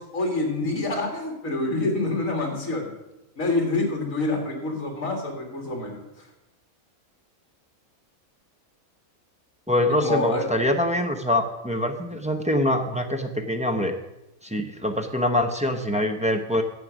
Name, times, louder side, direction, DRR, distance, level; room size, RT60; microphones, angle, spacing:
voice 1, 0.0-2.9 3.4-6.0 10.0-10.4, left 2 dB, 65° left, 3 dB, 2.4 m, -27 dB
voice 2, 9.7-13.9 14.4-16.6, left 1 dB, 10° right, 2 dB, 0.5 m, -24 dB
10.5 x 8.0 x 6.1 m, 0.93 s
omnidirectional pair, 1.5 m